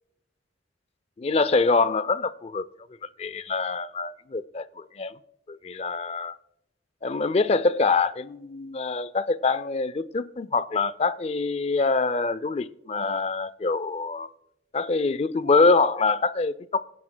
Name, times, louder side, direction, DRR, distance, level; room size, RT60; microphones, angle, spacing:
voice 1, 1.2-2.7 3.2-5.1 5.5-6.3 7.0-14.3 14.7-16.8, left 3 dB, 35° left, 0.4 m, -25 dB
23.0 x 10.5 x 2.3 m
head